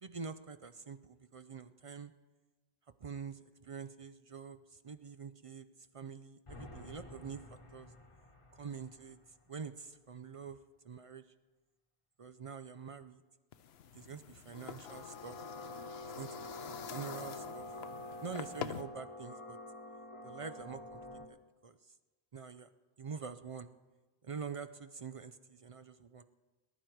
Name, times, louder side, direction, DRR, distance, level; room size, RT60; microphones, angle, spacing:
voice 1, 0.0-2.1 3.0-5.7 5.9-7.9 8.5-9.2 9.5-10.6 10.8-11.3 12.2-13.2 13.9-15.4 16.0-17.7 18.2-19.6 20.2-21.0 21.3-21.4 21.6-21.8 22.3-22.7 23.0-23.7 24.2-26.2, right 5 dB, 45° right, 11 dB, 0.5 m, -46 dB
sound 1, 6.5-9.4 14.8-21.3, left 1 dB, 30° left, 1.2 m, -48 dB
sound 2, 13.5-18.8, left 9 dB, 90° left, 0.9 m, -46 dB
19.5 x 11.0 x 4.6 m, 1.2 s
omnidirectional pair, 1.0 m